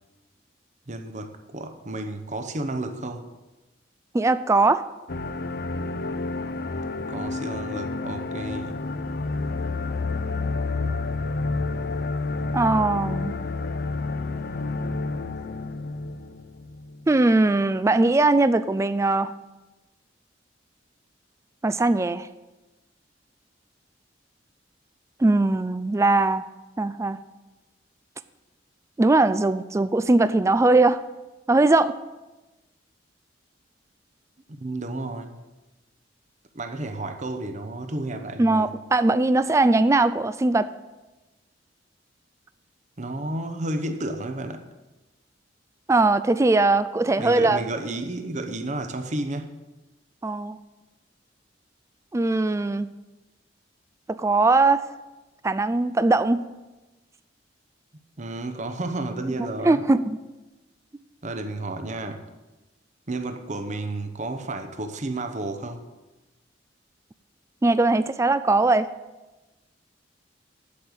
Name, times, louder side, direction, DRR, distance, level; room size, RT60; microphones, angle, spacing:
voice 1, 0.9-3.3 6.9-8.8 34.6-35.4 36.5-38.7 43.0-44.6 47.2-49.6 58.2-59.8 61.2-62.2 63.1-65.8, right 2 dB, 40° right, 7 dB, 0.9 m, -32 dB
voice 2, 4.1-4.9 12.5-13.3 17.1-19.3 21.6-22.3 25.2-26.5 26.8-27.2 29.0-31.0 31.5-32.0 38.4-40.7 45.9-47.6 50.2-50.6 52.1-52.9 54.1-54.8 55.4-56.5 59.6-60.2 67.6-68.9, right 2 dB, 15° right, 13 dB, 0.3 m, -20 dB
sound 1, 5.1-17.0, left 3 dB, 55° left, 0.6 m, -29 dB
8.5 x 8.0 x 8.5 m, 1.1 s
head